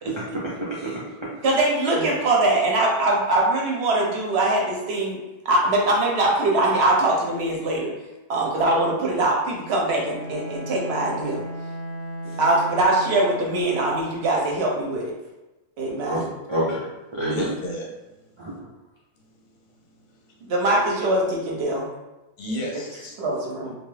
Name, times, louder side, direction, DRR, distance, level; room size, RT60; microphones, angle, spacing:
voice 1, 0.0-1.3 1.9-2.1 16.0-16.2 16.5-17.5 18.4-18.5, right 1 dB, 40° right, -7 dB, 0.4 m, -28 dB
voice 2, 1.4-5.2 5.4-7.9 8.3-11.4 12.4-15.1 15.8-16.2 20.5-21.9 23.2-23.8, right 2 dB, 65° right, -1 dB, 0.8 m, -22 dB
Bowed string instrument, 9.9-14.2, equal, 15° left, 0.8 m, -36 dB
voice 3, 17.3-18.1 19.9-20.4 22.4-23.2, equal, 50° left, -1 dB, 0.7 m, -33 dB
2.6 x 2.3 x 3.2 m, 1.0 s
omnidirectional pair, 1.3 m